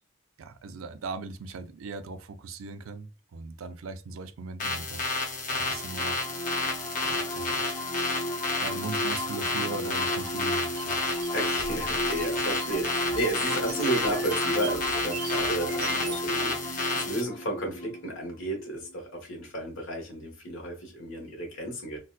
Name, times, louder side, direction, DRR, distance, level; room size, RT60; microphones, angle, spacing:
voice 1, 0.4-5.0 5.5-6.2 7.0-7.6 8.6-11.0, right 3 dB, 80° right, 0.4 m, -39 dB
sound 1, 4.6-17.2, left 3 dB, 40° left, 0.9 m, -31 dB
sound 2, 5.5-19.0, equal, 15° left, 0.4 m, -34 dB
sound 3, 10.8-16.3, right 4 dB, 45° right, 0.7 m, -40 dB
voice 2, 11.3-22.0, right 1 dB, 75° left, 1.4 m, -33 dB
3.9 x 2.2 x 2.3 m
head